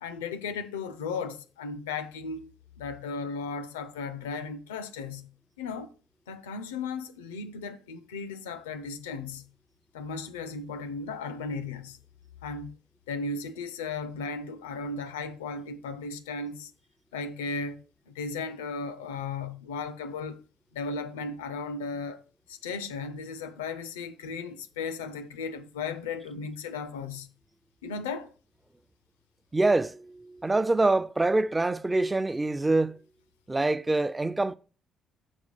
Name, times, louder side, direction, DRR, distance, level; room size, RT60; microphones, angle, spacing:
voice 1, 0.0-2.5 2.8-5.3 5.6-5.9 6.3-9.5 9.9-12.0 12.4-12.7 13.1-16.7 17.1-20.4 20.7-22.2 22.5-27.3 27.8-28.3, left 4 dB, 85° left, 0.4 m, -36 dB
voice 2, 29.5-33.0 33.5-34.6, right 2 dB, 20° right, 0.4 m, -25 dB
5.4 x 4.6 x 5.3 m
hypercardioid pair, 45°, 0 cm